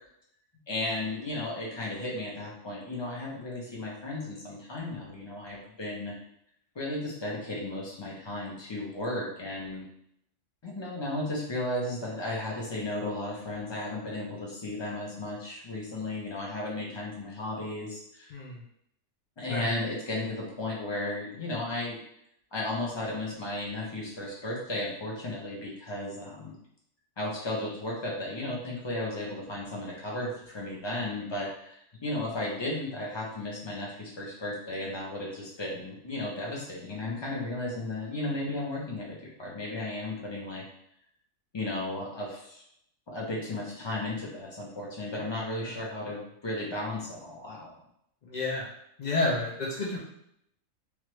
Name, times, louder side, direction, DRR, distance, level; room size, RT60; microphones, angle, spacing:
voice 1, 0.7-6.1 6.7-9.8 10.6-18.3 19.4-22.0 22.5-26.5 27.2-31.7 32.0-40.6 41.5-42.6 43.1-47.7, left 2 dB, 25° left, -4 dB, 0.6 m, -34 dB
voice 2, 18.3-18.6 19.5-19.7 45.6-45.7 48.2-48.7 49.0-50.0, left 2 dB, 70° left, -4 dB, 0.4 m, -30 dB
3.2 x 2.4 x 3.0 m, 0.73 s
omnidirectional pair, 1.4 m